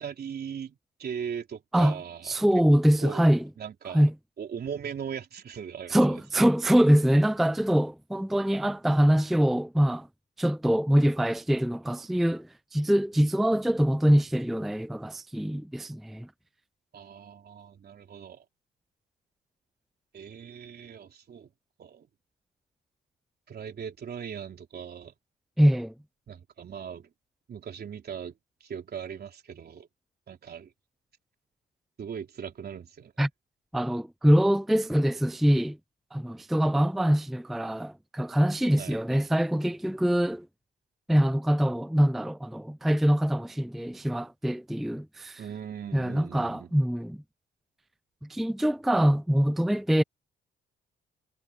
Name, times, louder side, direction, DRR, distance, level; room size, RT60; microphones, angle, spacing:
voice 1, 0.0-2.3 3.0-4.0 4.4-6.2 16.9-18.4 20.1-21.5 21.8-22.1 23.5-25.1 26.3-27.1 27.5-28.3 28.6-29.9 30.3-30.7 32.0-33.1 38.8-39.0 45.4-46.7, right 7 dB, 55° right, 3.5 m, -39 dB
voice 2, 2.2-3.5 3.9-4.1 5.9-10.1 10.4-16.3 25.6-25.9 33.2-33.3 33.7-35.8 36.1-40.5 41.1-45.4 45.9-47.2 48.2-50.0, equal, ahead, 0.4 m, -24 dB
cardioid pair, 90°, 20 cm